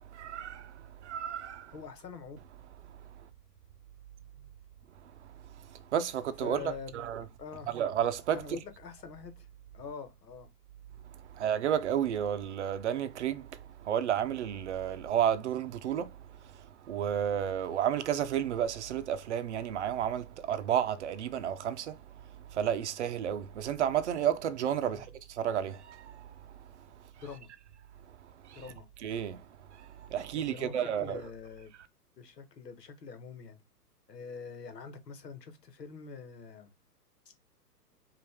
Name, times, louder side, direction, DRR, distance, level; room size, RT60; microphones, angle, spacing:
voice 1, 0.1-1.7 5.7-6.6 6.9-7.2 7.7-8.4 11.3-13.6 13.8-16.2 16.4-22.0 22.5-26.5 28.4-28.6 29.0-29.4 29.7-31.2, right 9 dB, 45° right, 0.6 m, -32 dB
voice 2, 1.7-2.4 6.4-6.9 7.4-7.7 8.3-9.5 9.7-10.5 24.9-25.0 27.2-27.5 28.5-28.9 30.3-31.7 32.2-33.6 34.1-36.7 37.2-37.3, left 6 dB, 75° left, 1.3 m, -45 dB
5.1 x 2.6 x 3.5 m
hypercardioid pair, 130°, 49 cm